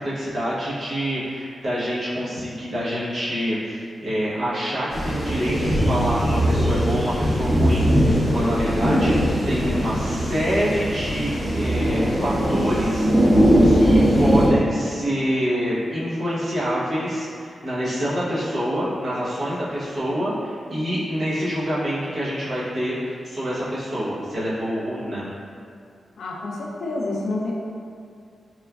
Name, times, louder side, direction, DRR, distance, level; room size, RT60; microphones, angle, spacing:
voice 1, 0.0-13.3 13.6-25.3, equal, 55° right, -9 dB, 0.8 m, -26 dB
sound 1, 4.9-14.5, equal, ahead, 0.7 m, -20 dB
voice 2, 26.2-27.5, left 2 dB, 85° left, -3 dB, 0.4 m, -28 dB
3.0 x 2.3 x 2.3 m, 2.3 s
wide cardioid pair, 120°, 0 cm